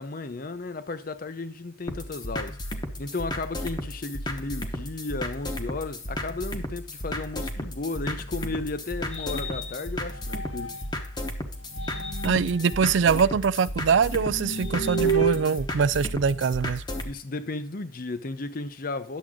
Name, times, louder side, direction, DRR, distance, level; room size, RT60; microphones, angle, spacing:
voice 1, 0.0-2.6 3.0-10.8 17.0-19.2, left 3 dB, 50° left, 0.7 m, -34 dB
sound 1, 1.9-17.1, left 1 dB, 25° left, 1.0 m, -34 dB
sound 2, 8.2-11.1 11.6-16.8, right 4 dB, 85° left, 1.2 m, -33 dB
voice 2, 12.2-16.8, right 6 dB, 75° right, 0.4 m, -23 dB
10.5 x 7.4 x 3.7 m
head